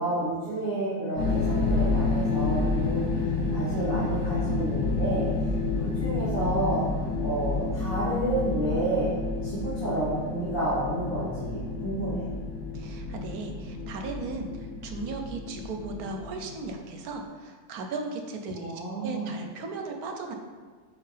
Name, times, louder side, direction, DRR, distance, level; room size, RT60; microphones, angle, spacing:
voice 1, 0.0-3.0 3.5-5.3 5.8-9.1 9.4-12.2 18.5-19.3, right 1 dB, 35° left, -11 dB, 1.6 m, -30 dB
sound 1, 1.2-17.0, left 3 dB, 75° left, 1.7 m, -29 dB
voice 2, 12.7-14.5 14.8-20.3, right 3 dB, 70° right, 4 dB, 1.2 m, -36 dB
6.6 x 5.3 x 3.3 m, 1.5 s
omnidirectional pair, 1.7 m